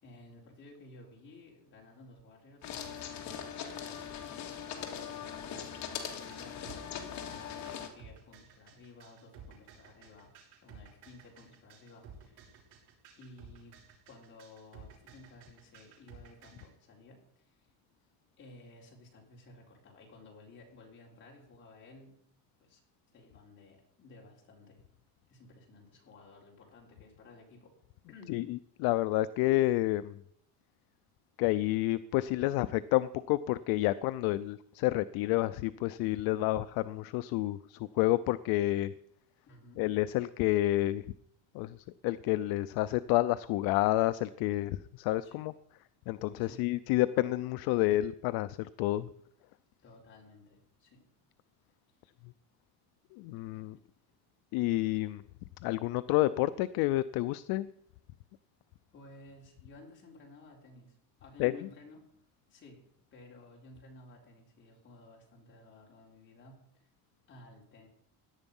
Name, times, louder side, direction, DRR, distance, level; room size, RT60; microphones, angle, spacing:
voice 1, 0.0-3.4 3.8-4.0 4.9-7.7 7.9-10.3 10.6-12.6 13.2-13.7 14.1-17.7 18.4-22.2 22.6-22.8 23.1-24.8 25.3-27.7 28.1-28.5 39.5-39.8 45.2-45.4 46.4-46.6 49.8-51.0 53.4-53.7 54.9-55.1 58.9-62.0 62.5-62.8 63.1-66.7 67.3-67.9, left 2 dB, 25° left, -1 dB, 3.9 m, -55 dB
sound 1, 2.6-7.9, left 8 dB, 45° left, 2.3 m, -41 dB
sound 2, 6.3-16.7, right 8 dB, 85° right, 6.7 m, -55 dB
voice 2, 28.8-30.2 31.4-38.9 39.8-41.0 41.5-41.8 42.0-45.5 46.1-49.1 53.1-53.8 54.5-55.2 55.6-57.7 61.4-61.5, left 16 dB, 60° left, 14 dB, 0.5 m, -29 dB
17.0 x 11.0 x 5.4 m, 0.71 s
cardioid pair, 180°, 41 cm